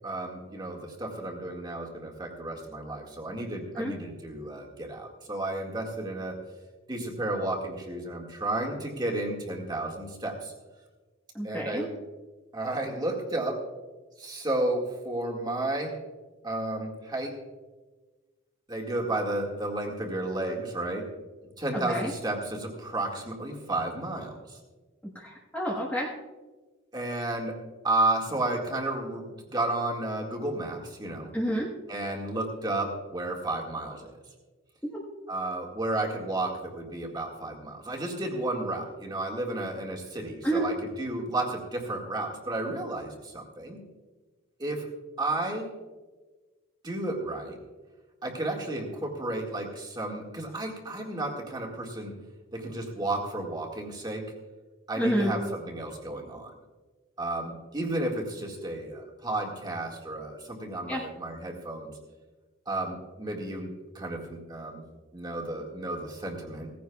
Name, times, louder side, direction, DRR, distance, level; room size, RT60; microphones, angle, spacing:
voice 1, 0.0-6.4 6.9-10.5 11.4-11.9 12.5-13.7 14.2-16.0 16.4-17.4 18.7-21.1 21.6-24.6 26.9-27.6 27.8-31.3 31.9-34.1 35.3-43.8 44.6-44.9 45.2-45.7 46.8-47.6 48.2-52.2 52.5-54.3 54.9-56.5 57.2-61.9 62.7-64.8 65.1-66.7, right 2 dB, 20° right, -1 dB, 1.9 m, -32 dB
voice 2, 11.3-11.8 21.7-22.1 25.1-26.1 31.3-31.7 40.4-40.6 55.0-55.3 60.9-61.0, equal, 10° left, -4 dB, 1.2 m, -28 dB
17.5 x 15.5 x 2.3 m, 1.3 s
head